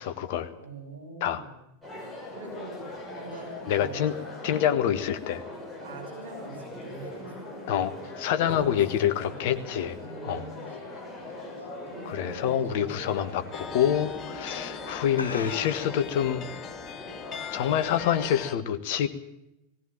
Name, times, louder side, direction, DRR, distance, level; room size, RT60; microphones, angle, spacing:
voice 1, 0.0-0.5 1.2-1.4 3.7-4.1 4.4-5.4 7.7-10.0 10.2-10.4 12.0-16.4 17.5-19.1, left 10 dB, 50° left, 9 dB, 1.4 m, -26 dB
voice 2, 0.6-1.6 2.3-2.8 3.2-3.9 5.8-7.4 8.4-8.8 9.1-9.3 9.9-10.6 11.9-13.0, right 3 dB, 65° right, -1 dB, 6.4 m, -43 dB
sound 1, 1.8-18.3, left 1 dB, ahead, 6.1 m, -41 dB
sound 2, 9.0-12.1 12.5-12.8 13.2-13.3 14.1-14.4 14.7-14.8 15.1-16.1, left 4 dB, 75° left, 1.1 m, -42 dB
sound 3, 13.5-18.6, left 7 dB, 30° left, 1.3 m, -40 dB
18.5 x 16.5 x 8.9 m, 0.89 s
figure-of-eight pair, 90°, 0 cm